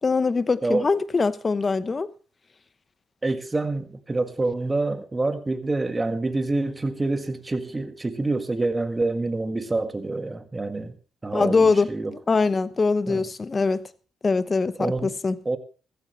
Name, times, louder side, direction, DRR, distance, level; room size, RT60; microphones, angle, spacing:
voice 1, 0.0-2.1 11.3-11.9 12.3-13.9 14.2-15.4, left 4 dB, 30° left, 0.9 m, -22 dB
voice 2, 3.2-11.0 11.2-12.1 13.1-13.2 14.8-15.1 15.4-15.6, right 2 dB, 20° right, 1.7 m, -27 dB
15.0 x 14.5 x 3.2 m
cardioid pair, 90°, 0 cm